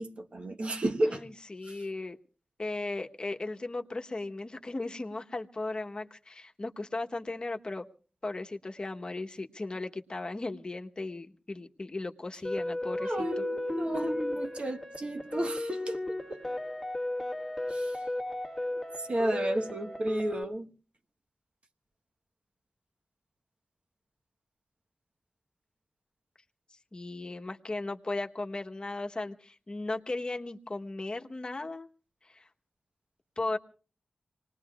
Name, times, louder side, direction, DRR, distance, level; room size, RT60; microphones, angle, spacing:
voice 1, 0.0-1.2 1.7-1.8 13.0-16.4 17.7-18.0 18.7-20.7, right 1 dB, 55° right, 1.2 m, -33 dB
voice 2, 1.1-2.2 2.6-7.9 8.2-13.4 26.9-31.9 32.2-32.5 33.4-33.6, left 2 dB, 40° left, 1.1 m, -36 dB
sound 1, 12.4-20.4, left 1 dB, ahead, 1.7 m, -34 dB
27.0 x 20.0 x 2.4 m
wide cardioid pair, 85°, 2 cm